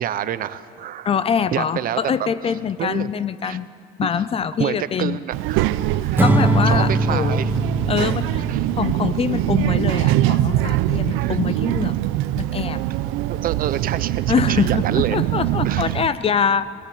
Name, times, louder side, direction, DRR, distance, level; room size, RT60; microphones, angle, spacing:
voice 1, 0.0-1.1 1.5-2.0 2.8-3.1 3.4-3.6 4.6-5.7 6.0-6.2 6.7-7.5 8.5-8.7 11.2-11.4 13.3-15.2 15.6-15.9, right 11 dB, 45° right, 14 dB, 0.8 m, -27 dB
voice 2, 1.0-3.7 4.0-5.2 6.2-7.4 7.9-8.4 8.8-11.9 12.4-12.8 14.3-16.7, left 7 dB, 30° left, 16 dB, 0.5 m, -24 dB
Child speech kid speaking, 5.3-16.1, right 14 dB, 75° right, 0.8 m, -23 dB
Acoustic guitar / Strum, 6.2-9.5, right 2 dB, 10° right, 1.2 m, -21 dB
23.5 x 19.0 x 8.7 m, 2.5 s
cardioid pair, 135°, 21 cm